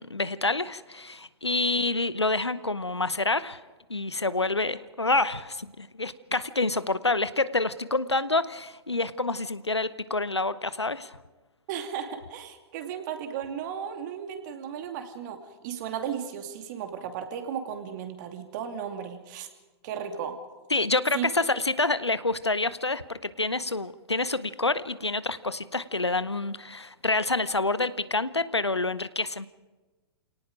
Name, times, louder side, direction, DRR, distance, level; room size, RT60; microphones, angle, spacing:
voice 1, 0.0-3.6 3.9-11.2 20.7-29.5, left 3 dB, 90° left, 16 dB, 0.9 m, -27 dB
voice 2, 11.7-19.5 19.8-20.4 21.1-21.3, right 8 dB, 45° right, 5 dB, 2.7 m, -35 dB
28.0 x 18.0 x 5.1 m, 1.2 s
figure-of-eight pair, 110°, 14 cm